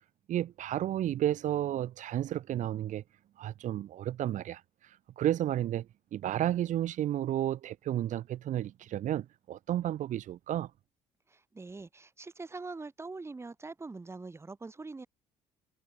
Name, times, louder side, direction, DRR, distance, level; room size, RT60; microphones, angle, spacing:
voice 1, 0.3-3.0 3.4-4.6 5.2-5.9 6.1-10.7, right 12 dB, 65° right, 4.5 m, -32 dB
voice 2, 11.3-15.1, right 3 dB, 20° right, 4.3 m, -43 dB
cardioid pair, 105°, 14 cm